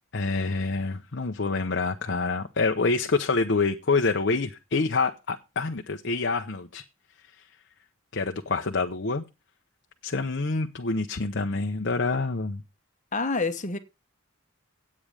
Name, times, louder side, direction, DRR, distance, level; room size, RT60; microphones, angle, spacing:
voice 1, 0.1-6.8 8.1-9.2 10.0-12.6, left 3 dB, 55° left, 0.9 m, -27 dB
voice 2, 13.1-13.8, left 3 dB, 35° left, 1.2 m, -27 dB
11.0 x 8.7 x 4.9 m
head